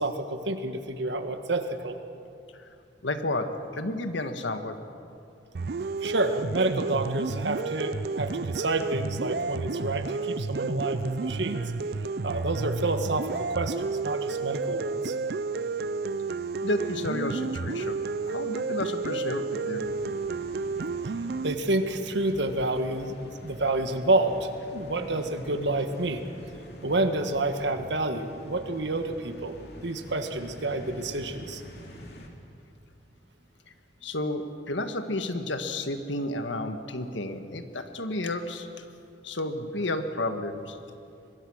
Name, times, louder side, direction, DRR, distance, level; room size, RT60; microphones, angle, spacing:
voice 1, 0.0-2.0 6.0-11.6 12.2-15.1 21.4-23.2 23.4-26.2 26.8-29.5 29.8-31.6, right 2 dB, 70° right, 7 dB, 1.6 m, -29 dB
voice 2, 3.0-4.8 16.6-19.9 34.0-38.8 39.2-40.8, left 2 dB, 85° left, 8 dB, 1.6 m, -31 dB
sound 1, 5.5-21.5, right 4 dB, 55° right, 0.4 m, -31 dB
sound 2, 19.8-32.3, equal, 60° left, 2.8 m, -46 dB
25.0 x 21.5 x 6.4 m, 2.6 s
head